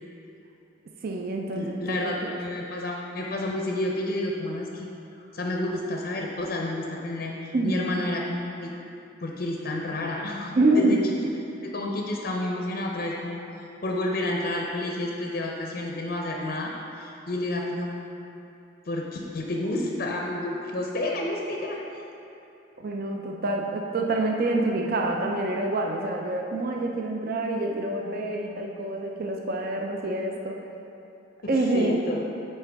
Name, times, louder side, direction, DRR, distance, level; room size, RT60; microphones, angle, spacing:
voice 1, 1.0-2.3 7.5-7.8 10.6-11.0 22.8-30.6 31.5-32.0, right 2 dB, 50° right, 1 dB, 0.5 m, -26 dB
voice 2, 1.5-4.9 5.2-8.7 9.2-11.0 11.6-13.4 13.8-17.9 18.8-21.8 31.5-32.2, left 1 dB, 50° left, -1 dB, 0.5 m, -30 dB
8.6 x 4.4 x 3.5 m, 2.8 s
head